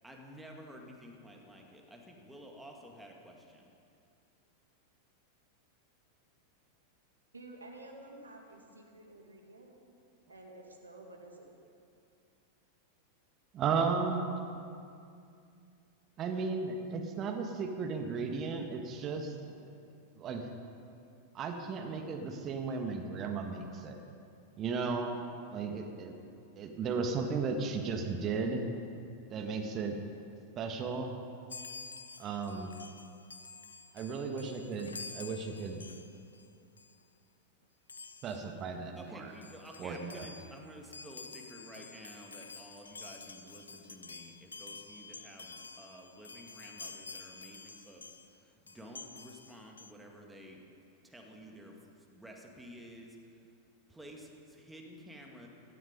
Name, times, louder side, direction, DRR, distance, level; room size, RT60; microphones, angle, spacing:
voice 1, 0.0-3.7 39.0-50.6 51.0-53.2 53.9-55.5, equal, 5° right, 0 dB, 2.2 m, -51 dB
voice 2, 7.3-9.7 10.3-11.5, right 2 dB, 80° right, 1 dB, 2.2 m, -51 dB
voice 3, 13.5-14.4 16.2-19.3 20.2-20.5 21.3-24.0 24.6-25.2 25.5-26.1 26.6-28.7 29.3-30.0 30.5-31.2 32.2-32.7 33.9-35.8 38.2-39.3 39.8-40.3, right 4 dB, 30° right, 4 dB, 1.5 m, -35 dB
Chime, 31.5-36.5 36.8-37.0 37.9-38.5 39.1-39.2 39.3-48.3 48.7-49.9, left 4 dB, 75° left, 0.7 m, -49 dB
17.0 x 12.0 x 5.3 m, 2.5 s
figure-of-eight pair, 90°, 0 cm